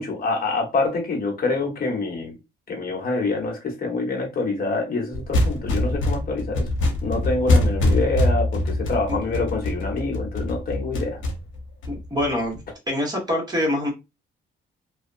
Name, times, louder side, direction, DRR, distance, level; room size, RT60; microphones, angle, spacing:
voice 1, 0.0-2.3 2.7-6.7 7.0-11.2, left 3 dB, 45° left, 1.1 m, -26 dB
sound 1, 5.1-12.6, left 1 dB, 80° left, 0.9 m, -23 dB
voice 2, 9.1-9.4 11.9-12.6 12.9-13.9, left 1 dB, 20° right, 1.3 m, -25 dB
2.7 x 2.2 x 2.5 m
cardioid pair, 90°, 20 cm